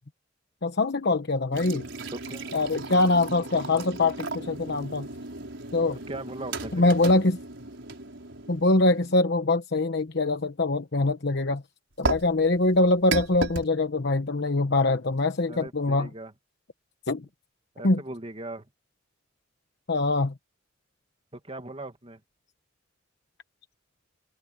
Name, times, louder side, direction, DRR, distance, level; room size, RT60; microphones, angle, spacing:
voice 1, 0.6-1.9 2.5-5.1 5.7-6.0 6.7-7.4 8.5-11.6 12.0-16.1 17.1-17.2 17.8-18.0 19.9-20.3, left 2 dB, 55° left, 1.0 m, -23 dB
sound 1, 1.5-9.2 12.0-13.7, right 3 dB, 65° right, 6.3 m, -35 dB
voice 2, 2.1-2.6 6.1-6.8 15.5-16.3 17.8-18.7 21.3-22.2, right 2 dB, 30° right, 2.2 m, -39 dB
head